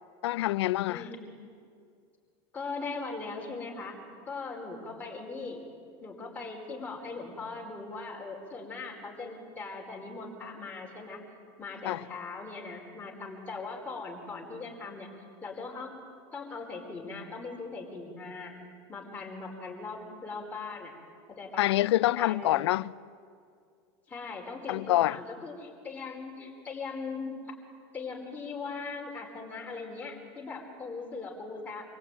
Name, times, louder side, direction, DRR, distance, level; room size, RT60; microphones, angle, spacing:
voice 1, 0.2-1.1 11.8-12.0 21.6-22.9 24.7-25.2, left 15 dB, 90° left, 0.6 m, -26 dB
voice 2, 0.9-1.2 2.5-4.0 4.3-5.6 6.0-11.2 11.6-15.1 15.4-15.9 16.3-18.5 18.9-20.9 21.3-21.6 22.2-22.6 24.1-27.5 27.9-31.8, left 4 dB, 10° left, 4.9 m, -40 dB
26.5 x 24.0 x 9.2 m
supercardioid pair, 165°, 14 cm